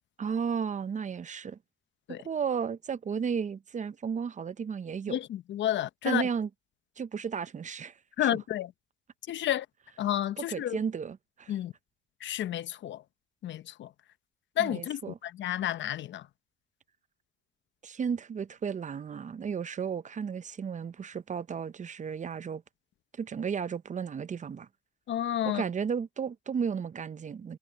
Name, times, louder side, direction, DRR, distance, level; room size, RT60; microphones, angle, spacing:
voice 1, 0.2-1.6 2.2-5.2 6.0-6.5 7.0-8.0 8.2-8.3 10.4-11.5 14.6-15.2 17.8-22.6 23.2-24.7 25.5-27.6, right 6 dB, 40° right, 0.7 m, -33 dB
voice 2, 5.1-6.3 8.2-8.7 9.3-9.7 10.0-10.8 11.5-11.7 12.2-13.0 13.4-13.9 14.6-16.3 25.1-25.6, left 11 dB, 65° left, 0.8 m, -31 dB
cardioid pair, 90°, 20 cm